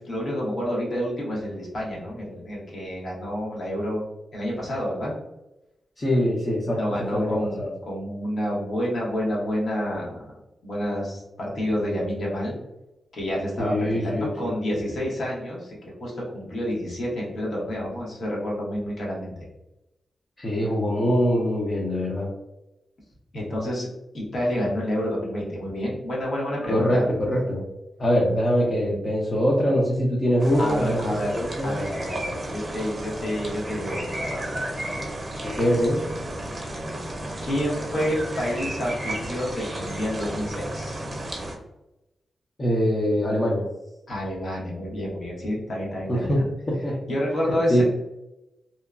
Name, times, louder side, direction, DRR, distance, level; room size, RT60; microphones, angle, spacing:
voice 1, 0.0-4.0 4.3-5.1 6.6-10.2 10.6-12.6 13.1-19.5 23.3-27.1 30.6-31.3 31.6-34.9 37.4-41.0 44.1-46.5 47.1-47.8, equal, 65° left, -4 dB, 1.2 m, -29 dB
voice 2, 6.0-6.8 7.1-7.7 13.6-14.3 14.6-14.8 20.4-22.3 26.7-27.6 28.0-31.8 35.4-36.0 42.6-43.6 46.1-46.4 46.7-47.0 47.7-47.8, equal, 35° left, -4 dB, 0.6 m, -23 dB
sound 1, 30.4-41.6, right 1 dB, 30° right, 0.8 m, -33 dB
2.8 x 2.2 x 2.4 m, 0.93 s
cardioid pair, 90°, 0 cm